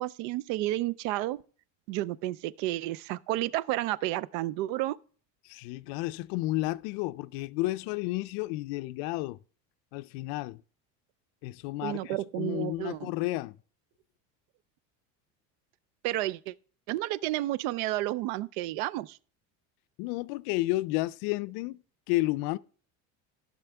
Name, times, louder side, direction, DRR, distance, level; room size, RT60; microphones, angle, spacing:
voice 1, 0.0-1.4 1.9-5.0 11.8-13.1 16.0-16.5 16.9-19.2, right 16 dB, 75° right, 0.5 m, -31 dB
voice 2, 5.5-9.4 9.9-10.6 11.4-13.6 20.0-21.8 22.1-22.6, left 19 dB, 80° left, 0.5 m, -31 dB
14.0 x 6.1 x 3.4 m
cardioid pair, 180°, 36 cm